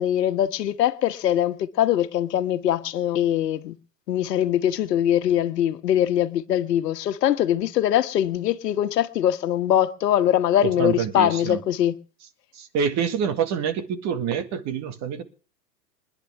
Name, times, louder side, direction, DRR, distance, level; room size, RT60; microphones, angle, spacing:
voice 1, 0.0-3.7 4.1-11.9, left 11 dB, 80° left, 1.5 m, -22 dB
voice 2, 10.6-11.6 12.5-15.2, right 7 dB, 35° right, 2.0 m, -26 dB
27.0 x 10.5 x 3.6 m
hypercardioid pair, 130°, 48 cm